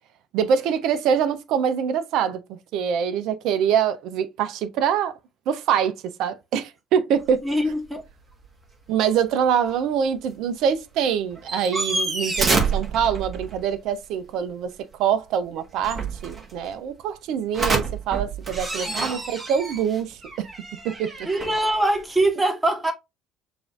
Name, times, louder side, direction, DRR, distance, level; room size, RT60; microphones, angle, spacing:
voice 1, 0.3-5.1 5.5-5.9 6.2-7.4 8.9-14.7 15.0-20.5 20.8-21.1, right 8 dB, 65° right, 0.6 m, -24 dB
sound 1, 7.2-7.3 7.6-7.7 8.1-8.5 10.3-10.4 10.7-10.8 11.3-13.8 15.6-16.7 17.5-22.3, right 3 dB, 30° right, 1.3 m, -28 dB
voice 2, 7.4-8.0 18.9-19.1 21.2-22.9, right 1 dB, 15° right, 1.5 m, -23 dB
6.8 x 2.6 x 2.4 m
hypercardioid pair, 55°, 0 cm